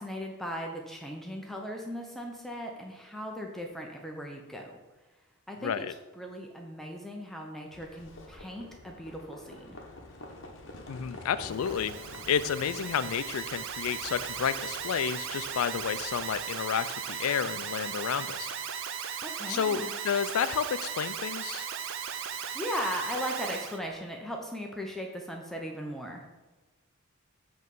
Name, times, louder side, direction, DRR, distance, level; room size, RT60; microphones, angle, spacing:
voice 1, 0.0-4.8 5.5-5.9 6.2-9.8 19.2-19.9 22.3-26.2, equal, ahead, 0 dB, 0.6 m, -38 dB
voice 2, 5.6-5.9 10.9-11.9 12.3-18.5 19.5-21.7, left 7 dB, 80° left, 14 dB, 0.4 m, -31 dB
Livestock farm animals working animals, 7.7-16.4, left 2 dB, 55° left, 1.0 m, -48 dB
Alarm, 11.4-23.8, right 7 dB, 55° right, 0.5 m, -37 dB
7.9 x 3.1 x 5.3 m, 1.2 s
head